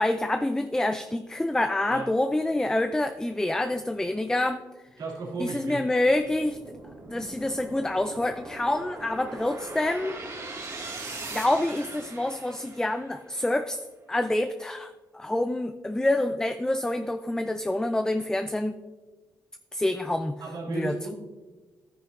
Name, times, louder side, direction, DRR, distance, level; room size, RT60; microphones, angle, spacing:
voice 1, 0.0-4.6 5.4-6.6 7.1-10.2 11.3-13.8 14.1-18.8 19.7-20.3 20.7-21.0, left 1 dB, 10° left, 9 dB, 0.4 m, -27 dB
voice 2, 5.0-5.8 20.4-21.1, right 3 dB, 75° right, -4 dB, 2.7 m, -34 dB
sound 1, 6.0-13.3, right 3 dB, 45° right, 2.1 m, -40 dB
11.5 x 9.6 x 2.6 m, 1.3 s
cardioid pair, 70°, 7 cm